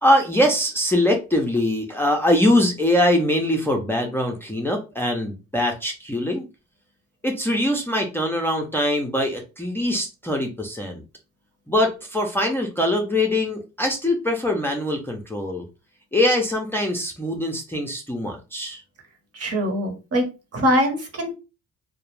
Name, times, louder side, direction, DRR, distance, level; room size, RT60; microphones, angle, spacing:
voice 1, 0.0-6.5 7.2-11.0 11.7-15.6 16.1-18.8, left 1 dB, 5° left, 1 dB, 0.5 m, -22 dB
voice 2, 19.3-20.2 20.5-21.3, equal, 50° right, 4 dB, 1.0 m, -22 dB
2.3 x 2.1 x 3.1 m, 0.29 s
cardioid pair, 90°, 30 cm